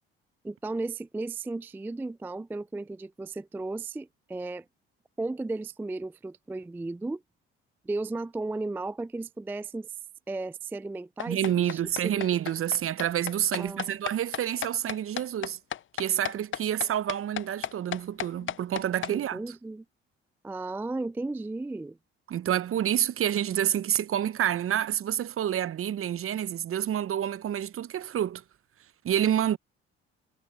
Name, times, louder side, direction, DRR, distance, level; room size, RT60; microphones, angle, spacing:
voice 1, 0.4-4.7 5.2-7.2 7.9-9.9 10.3-12.3 13.5-14.0 19.1-19.8 20.4-22.0, right 2 dB, 5° right, 0.3 m, -35 dB
sound 1, 11.2-19.1, left 11 dB, 40° left, 0.6 m, -34 dB
voice 2, 11.3-15.6 15.9-19.4 22.3-28.4 29.0-29.6, right 10 dB, 45° right, 0.8 m, -28 dB
hypercardioid pair, 55°, 30 cm